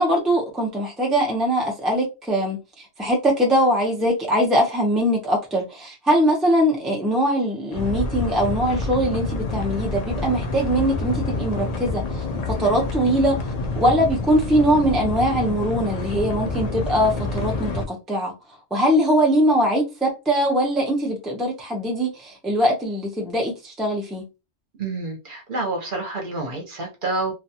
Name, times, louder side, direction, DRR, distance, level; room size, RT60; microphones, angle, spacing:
voice 1, 0.0-13.4 13.8-18.3 18.7-24.2, equal, ahead, 0.5 m, -22 dB
sound 1, 7.7-17.8, left 3 dB, 55° left, 0.5 m, -28 dB
voice 2, 24.8-27.3, right 2 dB, 50° right, 0.9 m, -28 dB
2.4 x 2.2 x 2.8 m
omnidirectional pair, 1.1 m